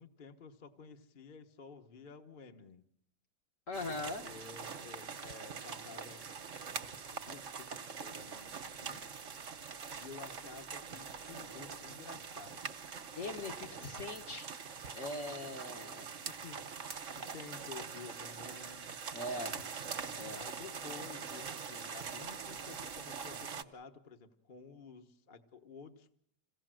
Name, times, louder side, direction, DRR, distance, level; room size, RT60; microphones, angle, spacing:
voice 1, 0.0-2.8 3.9-6.4 7.1-9.0 10.0-12.8 13.7-14.2 16.2-16.6 17.1-18.9 20.0-26.1, left 5 dB, 35° left, 5 dB, 1.2 m, -52 dB
voice 2, 3.7-4.3 13.2-14.5 14.9-16.2 19.1-19.6 20.1-20.5, left 2 dB, 50° left, 4 dB, 1.7 m, -41 dB
sound 1, 3.7-23.6, right 6 dB, 50° right, 1.4 m, -44 dB
26.5 x 17.0 x 7.6 m, 0.68 s
omnidirectional pair, 1.8 m